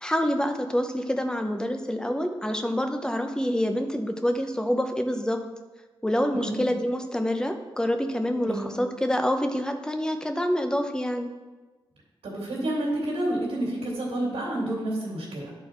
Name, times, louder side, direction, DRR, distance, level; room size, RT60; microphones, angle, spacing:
voice 1, 0.0-5.4 6.0-11.3, equal, 10° left, 6 dB, 0.7 m, -27 dB
voice 2, 12.2-15.5, right 1 dB, 85° right, -5 dB, 2.2 m, -29 dB
10.5 x 4.4 x 4.4 m, 1.2 s
wide cardioid pair, 105°, 10 cm